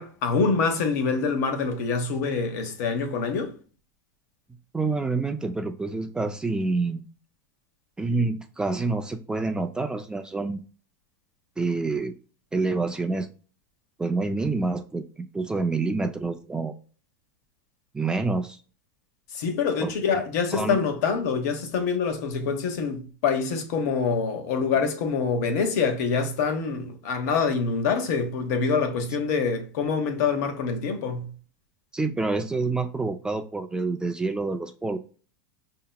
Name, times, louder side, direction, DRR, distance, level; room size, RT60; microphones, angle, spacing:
voice 1, 0.0-3.5 19.3-31.3, left 5 dB, 65° left, 0.9 m, -25 dB
voice 2, 4.7-7.0 8.0-10.6 11.6-12.1 12.5-13.3 14.0-16.7 17.9-18.6 19.8-20.2 20.5-20.8 31.9-35.0, right 3 dB, 10° right, 0.3 m, -27 dB
5.4 x 2.8 x 2.2 m
supercardioid pair, 130°, 9 cm